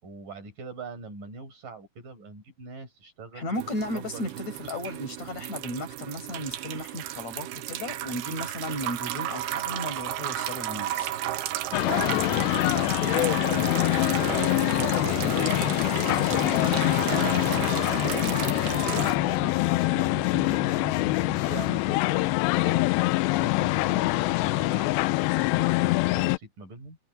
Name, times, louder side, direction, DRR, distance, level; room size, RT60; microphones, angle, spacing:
voice 1, 0.0-4.4 12.1-18.4 18.7-20.6 21.5-27.0, right 3 dB, 45° right, 7.3 m, -43 dB
voice 2, 3.3-11.1 16.0-16.4, left 1 dB, 35° left, 6.8 m, -35 dB
sound 1, 3.5-19.1, right 13 dB, 70° right, 2.6 m, -33 dB
sound 2, 11.7-26.4, left 21 dB, 85° left, 2.5 m, -24 dB
sound 3, 14.2-21.9, left 5 dB, 55° left, 7.6 m, -37 dB
omnidirectional pair, 5.5 m